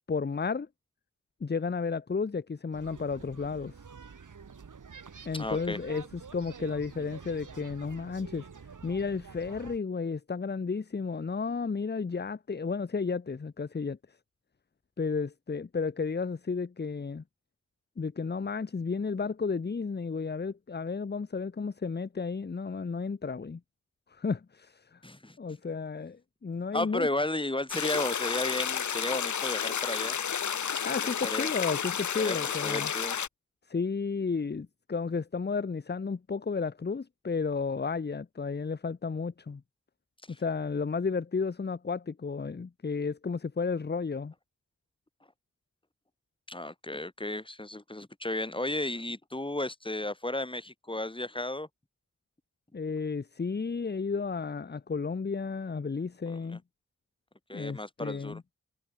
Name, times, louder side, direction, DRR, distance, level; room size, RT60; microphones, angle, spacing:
voice 1, 0.1-0.7 1.4-3.7 5.3-8.5 8.8-14.0 15.0-17.2 18.0-23.6 24.1-25.0 25.4-27.1 30.8-32.9 33.7-39.6 40.4-44.3 52.7-56.6 57.5-58.4, left 5 dB, 35° left, 0.8 m, -33 dB
sound 1, 2.7-9.8, right 6 dB, 85° right, 6.7 m, -48 dB
voice 2, 5.3-5.8 25.0-25.4 26.7-30.2 31.0-31.5 32.2-33.2 40.3-40.4 46.5-51.7 56.5-56.6 57.5-58.4, left 1 dB, 15° left, 2.7 m, -34 dB
sound 2, 27.7-33.3, left 7 dB, 70° left, 0.9 m, -31 dB
wide cardioid pair, 65°, 30 cm